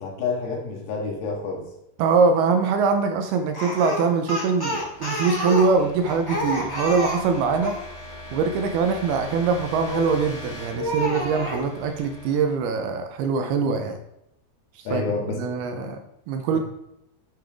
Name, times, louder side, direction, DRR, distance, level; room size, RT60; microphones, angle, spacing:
voice 1, 0.0-1.6 14.8-15.4 15.8-15.9 16.5-16.6, left 4 dB, 65° left, 0 dB, 3.2 m, -29 dB
voice 2, 2.0-7.7 8.3-14.0 14.9-16.0 16.3-16.6, right 5 dB, 80° right, 6 dB, 2.5 m, -23 dB
Speech, 3.5-7.8 9.9-10.3 10.8-11.6, left 1 dB, 25° left, 0.4 m, -29 dB
sound 1, 3.9-13.6, left 1 dB, 90° left, 4.4 m, -42 dB
9.3 x 6.9 x 3.5 m, 0.82 s
omnidirectional pair, 4.8 m